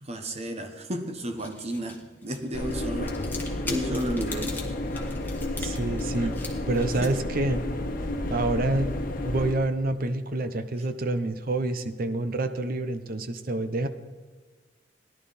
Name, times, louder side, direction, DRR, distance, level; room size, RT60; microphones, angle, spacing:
voice 1, 0.0-3.2 3.6-4.5 7.0-7.2, right 1 dB, 35° right, 6 dB, 1.2 m, -32 dB
sound 1, 1.1-9.6, left 3 dB, 10° left, 1.8 m, -44 dB
sound 2, 2.5-9.5, left 1 dB, 50° left, 1.1 m, -31 dB
voice 2, 5.6-7.6 8.3-8.9 9.2-13.9, right 2 dB, 55° right, 10 dB, 0.8 m, -27 dB
17.5 x 11.5 x 4.2 m, 1.4 s
head